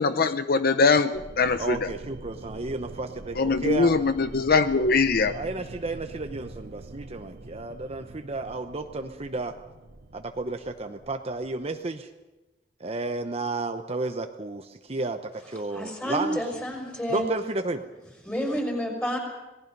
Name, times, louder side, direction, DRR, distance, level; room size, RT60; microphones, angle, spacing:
voice 1, 0.0-1.9 3.3-5.3, left 4 dB, 55° left, 11 dB, 0.7 m, -22 dB
sound 1, 1.1-11.7, right 2 dB, 60° right, 1.0 m, -44 dB
voice 2, 1.6-3.9 5.3-9.5 10.1-12.1 12.8-16.4 17.1-17.9, right 2 dB, 35° right, 6 dB, 0.9 m, -32 dB
voice 3, 15.7-17.3 18.3-19.2, equal, 10° left, 2 dB, 5.7 m, -29 dB
27.0 x 19.0 x 5.4 m, 1.1 s
head